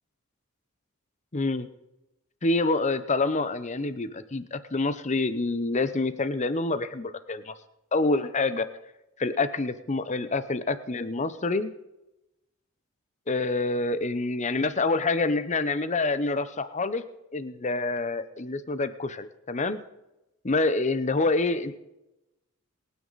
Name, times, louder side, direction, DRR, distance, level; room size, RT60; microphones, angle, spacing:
voice 1, 1.3-1.7 2.4-7.5 7.9-8.7 9.2-11.7 13.3-17.0 17.3-19.8 20.4-21.8, left 3 dB, 35° left, 13 dB, 0.8 m, -27 dB
25.5 x 9.5 x 4.1 m, 0.96 s
head